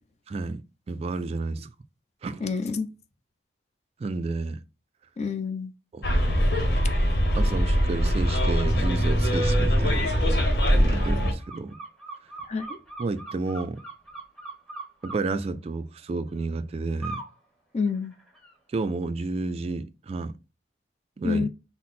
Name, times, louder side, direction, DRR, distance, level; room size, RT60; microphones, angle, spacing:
voice 1, 0.3-0.6 0.9-1.7 2.2-2.4 4.0-4.6 5.9-6.1 7.4-10.3 10.7-11.8 13.0-13.8 15.0-17.2 18.7-20.3 21.2-21.5, right 3 dB, 35° right, 0.3 m, -31 dB
voice 2, 2.4-2.9 5.2-5.7 12.5-12.8 17.7-18.1 21.2-21.5, left 5 dB, 40° left, 0.5 m, -28 dB
Bus, 6.0-11.3, equal, 60° left, 1.2 m, -22 dB
sound 1, 9.4-9.6 10.0-15.2 17.0-17.3 17.8-18.5, right 3 dB, 5° left, 1.1 m, -41 dB
5.7 x 2.0 x 4.1 m
head